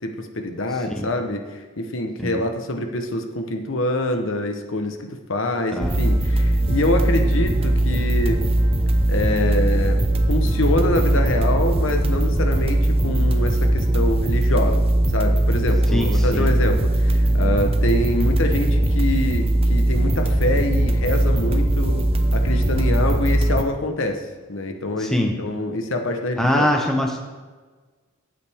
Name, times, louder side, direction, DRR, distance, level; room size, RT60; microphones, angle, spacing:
voice 1, 0.0-8.4 9.1-10.0 10.3-14.8 15.1-26.7, left 1 dB, 65° left, 5 dB, 1.0 m, -25 dB
voice 2, 0.7-1.1 2.2-2.4 5.7-6.0 15.9-16.5 25.0-25.4 26.4-27.2, left 1 dB, ahead, 1 dB, 0.9 m, -23 dB
sound 1, 5.8-23.6, right 1 dB, 25° right, 0.5 m, -20 dB
13.0 x 8.7 x 3.5 m, 1.3 s
head